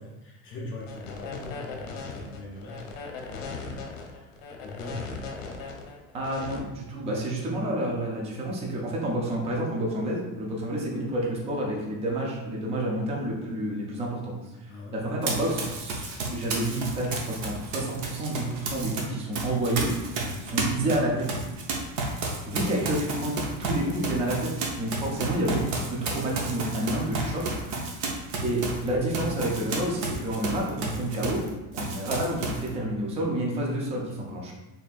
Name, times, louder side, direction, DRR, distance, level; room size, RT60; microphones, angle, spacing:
voice 1, 0.0-5.4 14.7-15.0 20.2-20.4 22.4-22.7, left 2 dB, 30° left, -3 dB, 0.6 m, -42 dB
sound 1, 0.8-6.6, left 4 dB, 65° left, 0.8 m, -38 dB
voice 2, 6.1-14.4 14.6-19.9 20.4-21.4 22.5-28.0 28.4-31.4 31.7-34.5, right 1 dB, 15° right, -2 dB, 0.5 m, -29 dB
Run, 15.2-19.0 19.3-31.5 31.7-32.7, right 3 dB, 50° right, 0.7 m, -32 dB
4.2 x 3.4 x 2.4 m, 1.1 s
cardioid pair, 160°, 39 cm